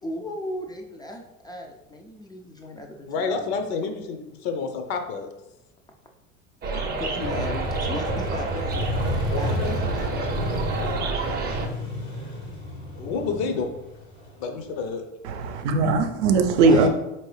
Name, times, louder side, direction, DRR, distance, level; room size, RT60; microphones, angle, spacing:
voice 1, 0.0-3.1 3.3-3.6 6.8-10.6 13.0-13.2 16.6-16.9, left 1 dB, 10° left, 2 dB, 0.4 m, -37 dB
voice 2, 3.1-5.3 9.3-9.8 13.0-13.7 14.4-15.0 16.8-16.9, left 5 dB, 55° left, 6 dB, 0.7 m, -29 dB
sound 1, 6.6-11.7, right 3 dB, 25° right, 0.6 m, -29 dB
Motorcycle, 7.2-14.9, left 1 dB, 85° left, 1.3 m, -31 dB
voice 3, 15.2-16.9, right 4 dB, 65° right, 6 dB, 0.6 m, -19 dB
4.3 x 3.0 x 3.1 m, 0.93 s
hypercardioid pair, 75°, 38 cm